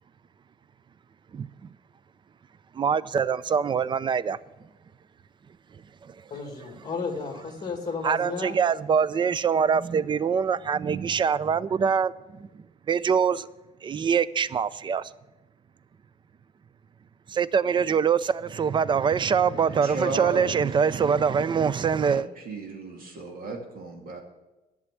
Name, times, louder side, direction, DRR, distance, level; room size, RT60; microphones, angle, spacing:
voice 1, 1.3-1.7 2.7-4.4 6.0-6.1 8.0-13.5 13.8-15.1 17.3-22.3, right 6 dB, 30° right, 0.4 m, -24 dB
voice 2, 6.3-8.6, left 4 dB, 25° left, 2.0 m, -33 dB
voice 3, 19.7-20.6 22.0-24.2, right 3 dB, 60° right, 2.4 m, -34 dB
11.0 x 7.3 x 8.2 m
cardioid pair, 110°, 17 cm